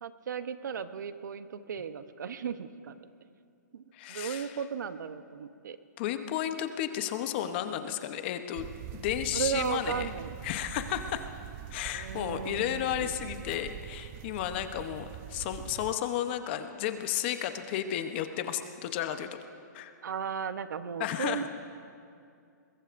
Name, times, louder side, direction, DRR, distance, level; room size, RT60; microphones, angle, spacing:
voice 1, 0.0-3.1 3.7-3.8 4.1-5.8 9.3-10.3 11.9-13.1 20.0-21.5, right 7 dB, 75° right, 11 dB, 0.9 m, -35 dB
voice 2, 3.9-4.5 6.0-10.1 10.4-11.2 11.7-19.3 19.7-19.9 21.0-21.5, left 11 dB, 35° left, 8 dB, 0.9 m, -33 dB
sound 1, 8.6-16.0, right 12 dB, 25° right, 0.3 m, -43 dB
22.5 x 22.0 x 2.6 m, 2.4 s
hypercardioid pair, 155°, 10 cm